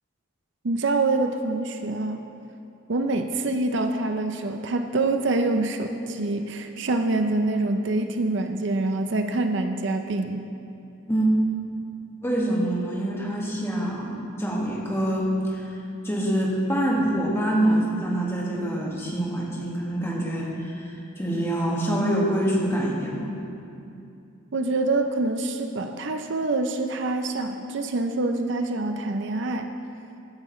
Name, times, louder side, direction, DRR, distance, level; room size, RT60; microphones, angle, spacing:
voice 1, 0.6-2.2 2.9-10.4 24.5-29.7, right 2 dB, 60° right, 6 dB, 0.5 m, -25 dB
voice 2, 12.2-15.7 16.0-23.3, right 1 dB, 10° left, -4 dB, 1.7 m, -25 dB
15.5 x 11.0 x 3.1 m, 2.7 s
head